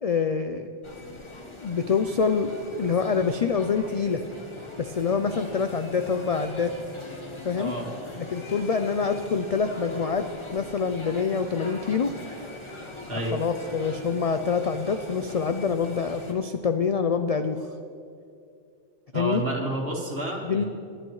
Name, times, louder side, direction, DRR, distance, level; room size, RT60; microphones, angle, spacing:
voice 1, 0.0-0.7 1.6-2.5 2.8-4.2 4.8-6.8 7.4-7.7 8.2-12.1 13.3-17.7 19.1-19.4 20.4-20.6, left 5 dB, 55° left, 8 dB, 0.4 m, -26 dB
sound 1, 0.8-16.3, left 2 dB, 25° left, 1.3 m, -41 dB
voice 2, 7.5-7.9 13.1-13.4 19.1-20.7, right 1 dB, 55° right, -1 dB, 2.2 m, -30 dB
22.0 x 11.0 x 3.2 m, 2.4 s
omnidirectional pair, 1.2 m